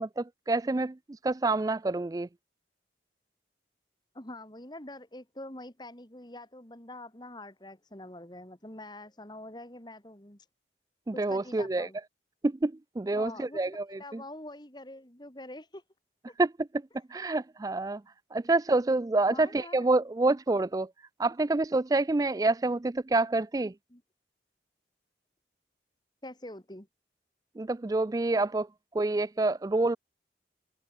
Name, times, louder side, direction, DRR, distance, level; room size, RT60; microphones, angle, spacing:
voice 1, 0.0-2.3 11.1-11.9 12.4-14.2 16.4-16.5 17.1-18.0 18.3-20.9 21.2-23.7 27.6-28.7 28.9-30.0, right 2 dB, 20° right, 0.4 m, -27 dB
voice 2, 4.1-10.4 11.1-12.0 13.1-15.8 16.3-16.4 19.3-19.8 23.9-24.0 26.2-26.9, left 1 dB, 25° left, 2.8 m, -45 dB
head